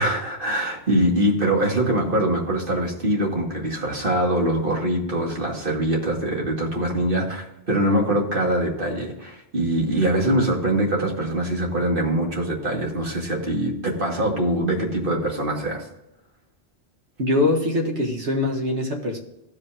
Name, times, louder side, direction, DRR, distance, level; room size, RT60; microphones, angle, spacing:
voice 1, 0.0-15.9, right 1 dB, 50° right, 0 dB, 2.2 m, -23 dB
voice 2, 17.2-19.2, left 2 dB, 75° right, 0 dB, 2.0 m, -23 dB
15.5 x 5.3 x 3.6 m, 0.89 s
omnidirectional pair, 1.2 m